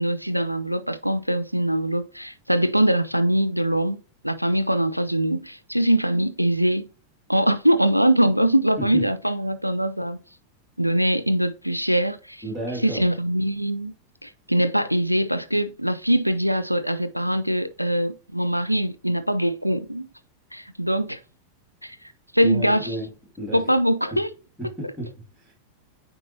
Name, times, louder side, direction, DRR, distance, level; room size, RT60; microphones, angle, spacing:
voice 1, 0.0-6.9 7.3-10.2 10.8-12.4 12.8-13.9 14.2-20.1 20.5-21.2 21.8-22.0 22.3-22.9 23.5-24.3, right 1 dB, 90° right, 0.4 m, -22 dB
voice 2, 12.4-13.0 22.4-23.1 23.4-23.7 24.6-25.5, right 1 dB, 10° right, 2.2 m, -32 dB
9.1 x 4.1 x 2.7 m
figure-of-eight pair, 90°, 0 cm